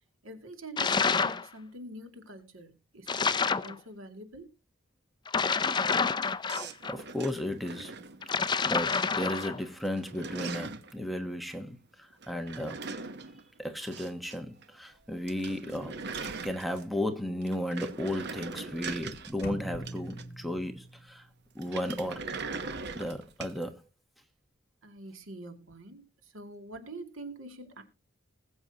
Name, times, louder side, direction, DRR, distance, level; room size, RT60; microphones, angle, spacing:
voice 1, 0.2-4.5 24.8-27.8, right 1 dB, 80° right, 2.4 m, -45 dB
sound 1, 0.8-1.5 3.1-3.7 5.3-7.0 8.2-9.6, left 5 dB, 20° left, 0.5 m, -28 dB
sound 2, 6.5-8.6 8.9-9.5 9.7-10.9 12.2-14.4 14.6-14.7 15.0-15.1 15.3-17.0 17.4-20.5 21.6-23.6, right 4 dB, 55° right, 1.0 m, -41 dB
voice 2, 6.6-8.0 8.7-12.8 13.6-15.9 16.4-21.3 21.5-22.2 22.9-23.8, left 1 dB, ahead, 1.1 m, -34 dB
sound 3, 19.4-21.3, right 1 dB, 50° left, 2.3 m, -42 dB
20.5 x 7.9 x 2.8 m
head